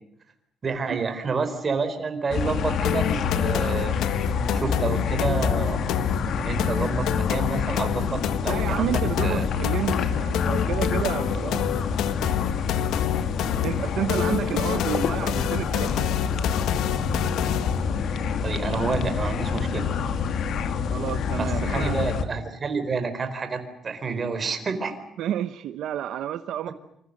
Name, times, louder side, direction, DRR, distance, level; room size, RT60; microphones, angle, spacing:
voice 1, 0.6-4.0 4.5-5.8 6.4-9.4 18.4-19.9 21.3-25.0, right 4 dB, 25° right, 8 dB, 4.3 m, -29 dB
sound 1, 2.3-22.2, left 6 dB, 55° left, 2.4 m, -27 dB
sound 2, 2.8-17.9, left 10 dB, 85° left, 1.4 m, -28 dB
voice 2, 8.5-11.7 13.6-16.1 20.9-21.9 25.2-26.7, right 10 dB, 70° right, 11 dB, 1.0 m, -30 dB
28.0 x 27.0 x 6.7 m, 0.76 s
cardioid pair, 170°, 0 cm